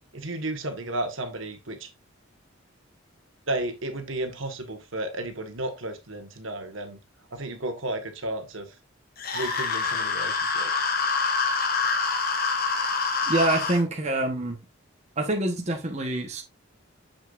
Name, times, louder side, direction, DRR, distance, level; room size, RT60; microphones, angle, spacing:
voice 1, 0.1-1.9 3.5-7.0 7.3-8.7 9.3-10.8, right 1 dB, 70° right, 1.5 m, -33 dB
sound 1, 9.2-13.8, left 4 dB, 45° left, 1.1 m, -26 dB
voice 2, 13.3-14.6 15.2-16.4, right 2 dB, 30° right, 1.1 m, -26 dB
7.1 x 6.6 x 2.5 m
head